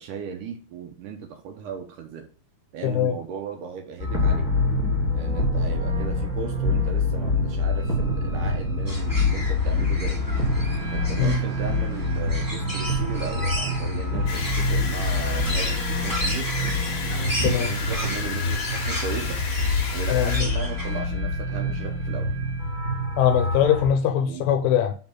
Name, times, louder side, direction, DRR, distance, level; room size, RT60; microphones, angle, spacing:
voice 1, 0.0-2.3 2.7-4.5 5.1-10.3 10.6-16.5 17.6-19.4 19.9-22.3 24.3-24.5, right 6 dB, 75° right, 2.1 m, -36 dB
voice 2, 2.8-3.1 11.2-11.4 17.4-17.7 20.1-20.5 23.2-24.9, left 9 dB, 80° left, 2.2 m, -21 dB
sound 1, 4.0-23.9, left 2 dB, 5° left, 1.3 m, -26 dB
sound 2, 8.8-21.0, right 1 dB, 20° right, 0.6 m, -34 dB
sound 3, 14.3-20.4, left 5 dB, 60° left, 1.2 m, -33 dB
5.3 x 3.8 x 5.9 m
omnidirectional pair, 4.3 m